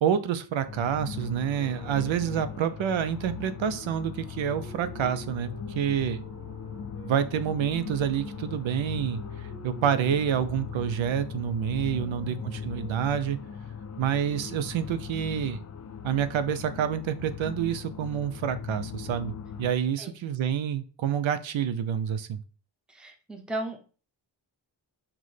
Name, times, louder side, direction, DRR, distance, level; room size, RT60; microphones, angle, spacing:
voice 1, 0.0-6.2 7.0-13.4 14.0-15.6 16.0-19.3 19.6-22.4, right 9 dB, 80° right, 11 dB, 0.6 m, -28 dB
sound 1, 0.7-19.7, left 7 dB, 40° left, 0.4 m, -39 dB
sound 2, 1.4-7.2 7.9-13.4, right 3 dB, 55° right, 2.1 m, -52 dB
voice 2, 12.0-12.4 20.0-20.1 22.9-23.8, right 1 dB, ahead, 3 dB, 0.6 m, -37 dB
5.9 x 2.1 x 3.2 m, 0.38 s
wide cardioid pair, 100°, 46 cm